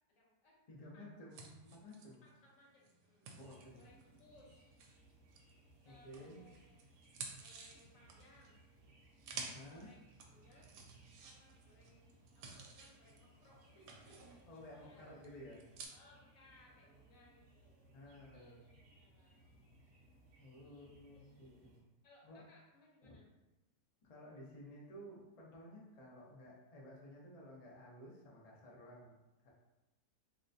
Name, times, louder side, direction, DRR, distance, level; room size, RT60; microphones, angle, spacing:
voice 1, 0.1-1.1 2.2-3.3 3.7-4.7 5.8-7.0 7.4-8.6 9.6-10.0 10.3-10.7 11.2-15.1 15.9-19.5 20.6-21.8 22.0-23.3, left 2 dB, 60° left, -3 dB, 1.1 m, -66 dB
voice 2, 0.7-2.2 3.3-3.8 5.8-6.4 9.3-9.9 14.5-15.7 17.9-18.5 20.4-21.8 22.2-22.5 23.0-23.2 24.1-29.1 29.4-29.5, left 1 dB, 75° left, -4 dB, 0.3 m, -54 dB
sound 1, 1.3-5.7 6.1-15.9, right 5 dB, 85° right, 1.2 m, -54 dB
sound 2, 3.3-21.8, right 2 dB, 50° right, 0.9 m, -66 dB
3.2 x 2.9 x 2.6 m, 1.0 s
omnidirectional pair, 1.8 m